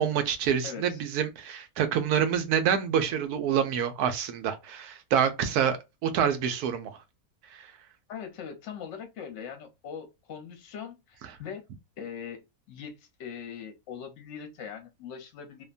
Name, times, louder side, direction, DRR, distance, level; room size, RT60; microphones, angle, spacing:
voice 1, 0.0-7.0 7.5-7.7, right 8 dB, 90° right, 1.1 m, -27 dB
voice 2, 0.6-1.0 8.1-11.6 12.0-15.6, left 7 dB, 60° left, 1.0 m, -41 dB
2.8 x 2.1 x 2.4 m
omnidirectional pair, 1.6 m